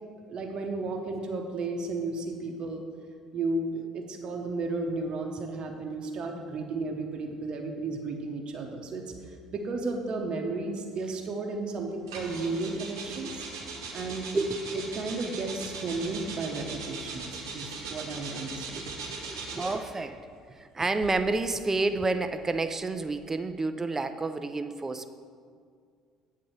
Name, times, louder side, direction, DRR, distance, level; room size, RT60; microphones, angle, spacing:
voice 1, 0.3-2.8 3.3-13.4 13.9-14.3 14.7-18.9, right 3 dB, 40° right, 2 dB, 0.9 m, -33 dB
sound 1, 12.1-19.9 20.8-23.3, right 4 dB, 75° right, 0.9 m, -40 dB
voice 2, 18.8-20.2 20.6-25.1, right 3 dB, 20° right, 9 dB, 0.4 m, -30 dB
8.6 x 3.7 x 6.5 m, 2.1 s
figure-of-eight pair, 55°, 2 cm